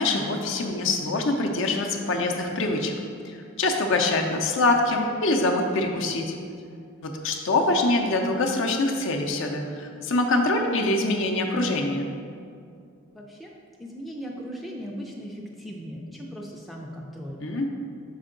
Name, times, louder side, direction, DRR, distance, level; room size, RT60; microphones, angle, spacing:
voice 1, 0.0-2.9 3.3-6.3 7.0-12.1 17.4-17.6, left 2 dB, 60° left, 2 dB, 0.5 m, -24 dB
voice 2, 0.5-0.9 3.3-3.4 13.1-17.4, equal, ahead, -2 dB, 0.4 m, -38 dB
5.6 x 4.4 x 3.8 m, 2.3 s
head